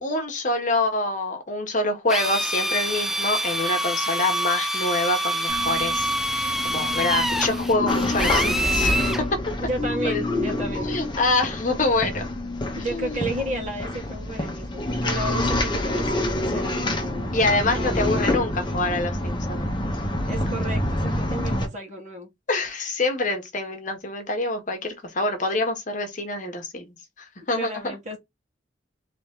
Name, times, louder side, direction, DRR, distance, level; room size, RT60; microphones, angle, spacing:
voice 1, 0.0-9.3 10.0-10.6 10.9-12.2 12.9-13.2 17.3-19.7 22.5-26.9 27.5-27.9, left 2 dB, 45° left, 1.3 m, -26 dB
Drill, 2.1-9.2, right 1 dB, ahead, 0.5 m, -26 dB
sound 1, 5.5-21.6, left 1 dB, 25° left, 1.1 m, -27 dB
voice 2, 9.6-10.9 12.7-17.3 17.6-18.4 20.3-22.3 27.6-28.2, right 1 dB, 40° right, 1.8 m, -33 dB
4.0 x 3.4 x 3.7 m
head